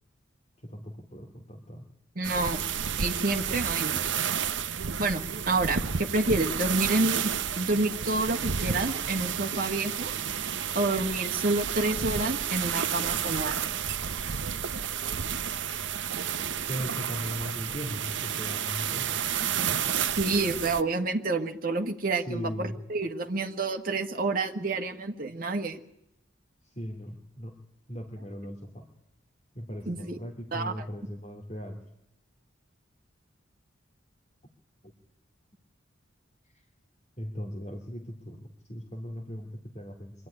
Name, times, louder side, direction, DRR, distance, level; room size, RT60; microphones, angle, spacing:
voice 1, 0.6-1.9 16.7-19.2 22.1-22.8 26.6-27.6 27.9-28.9 29.5-31.8 37.2-40.1, equal, 35° left, 1 dB, 2.5 m, -38 dB
voice 2, 2.1-2.6 3.0-4.0 5.0-10.1 10.7-13.6 19.9-25.8 29.9-30.2 30.5-30.8, right 2 dB, 45° right, 4 dB, 1.5 m, -29 dB
sound 1, 2.2-20.8, right 8 dB, 70° right, 0.8 m, -31 dB
24.0 x 13.0 x 9.9 m, 0.84 s
head